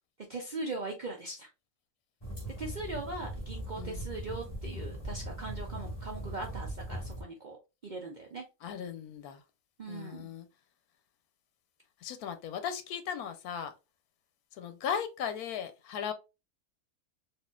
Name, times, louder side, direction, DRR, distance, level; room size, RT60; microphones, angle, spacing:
voice 1, 0.3-1.5 2.6-7.6 7.8-8.4 9.8-10.3, right 2 dB, 65° right, 0.4 m, -40 dB
sound 1, 2.2-7.2, right 1 dB, 20° left, 1.1 m, -40 dB
voice 2, 3.8-4.1 8.6-9.4 9.9-10.5 12.0-13.7 14.5-16.1, left 8 dB, 85° left, 1.1 m, -37 dB
4.2 x 2.6 x 2.3 m
omnidirectional pair, 1.5 m